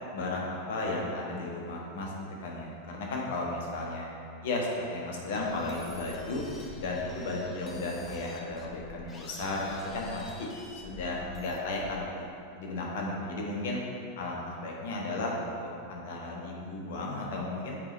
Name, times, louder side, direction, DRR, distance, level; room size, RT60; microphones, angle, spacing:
voice 1, 0.1-2.1 2.4-4.1 4.4-6.4 6.8-10.5 10.8-12.3 12.5-13.8 14.1-17.7, left 2 dB, 55° left, -2 dB, 1.3 m, -34 dB
sound 1, 5.4-12.2, left 3 dB, 20° left, 0.8 m, -48 dB
7.4 x 5.0 x 3.9 m, 2.5 s
figure-of-eight pair, 90°, 0 cm